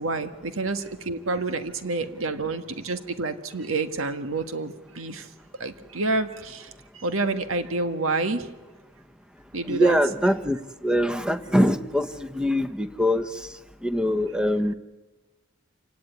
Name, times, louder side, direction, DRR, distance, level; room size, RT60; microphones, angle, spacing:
voice 1, 0.0-5.3 5.6-8.5 9.5-10.0, right 3 dB, 90° right, 8 dB, 1.7 m, -28 dB
voice 2, 9.7-10.6 10.8-13.3 13.8-14.7, equal, 5° right, 11 dB, 0.9 m, -23 dB
28.0 x 17.5 x 9.8 m, 1.2 s
head